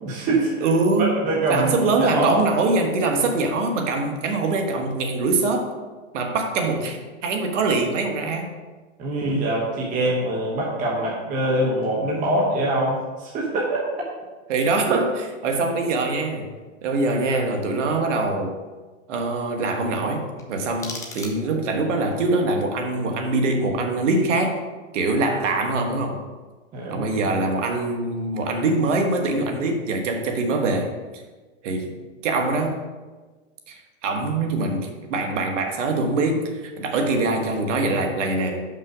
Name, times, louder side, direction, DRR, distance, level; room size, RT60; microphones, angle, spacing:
voice 1, 0.0-0.7 1.0-2.4 9.0-13.7 26.7-27.1, right 1 dB, 20° right, -3 dB, 1.0 m, -24 dB
voice 2, 0.6-1.2 1.5-5.7 6.1-8.5 14.5-16.5 16.8-18.5 19.1-24.6 24.9-26.2 26.9-30.9 31.6-32.0 32.2-32.8 33.7-38.7, right 3 dB, 65° right, 3 dB, 1.5 m, -23 dB
sound 1, 20.4-21.8, left 3 dB, 10° left, 0.4 m, -38 dB
5.8 x 5.6 x 5.0 m, 1.3 s
hypercardioid pair, 145°, 39 cm